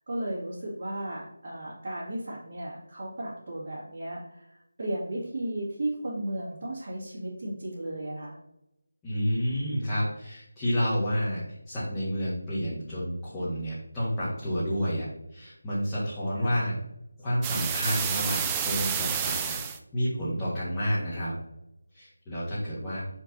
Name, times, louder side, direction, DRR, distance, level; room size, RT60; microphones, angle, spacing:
voice 1, 0.0-8.4 16.3-16.6, right 1 dB, 45° right, -7 dB, 2.2 m, -35 dB
voice 2, 9.0-11.4 11.7-15.1 15.3-16.7 17.2-19.6 19.9-21.3 21.9-23.0, equal, 10° left, -11 dB, 1.6 m, -29 dB
sound 1, 17.4-19.8, right 8 dB, 10° right, 0.3 m, -29 dB
6.0 x 4.6 x 4.0 m, 0.85 s
figure-of-eight pair, 165°, 0 cm